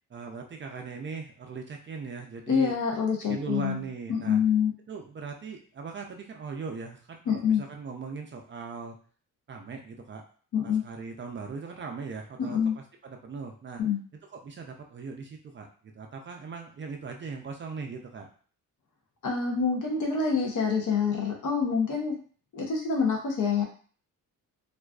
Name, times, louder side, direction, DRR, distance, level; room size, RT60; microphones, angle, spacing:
voice 1, 0.1-2.7 3.3-4.4 4.9-9.0 9.5-10.2 10.6-13.8 14.3-15.7 15.9-18.3, right 4 dB, 35° right, 2 dB, 0.4 m, -39 dB
voice 2, 2.5-3.8 4.1-4.7 7.3-7.6 10.5-10.8 12.4-12.8 13.8-14.0 19.2-22.2 22.5-23.6, left 6 dB, 65° left, 0 dB, 0.7 m, -26 dB
2.4 x 2.3 x 2.3 m, 0.43 s
cardioid pair, 105°, 33 cm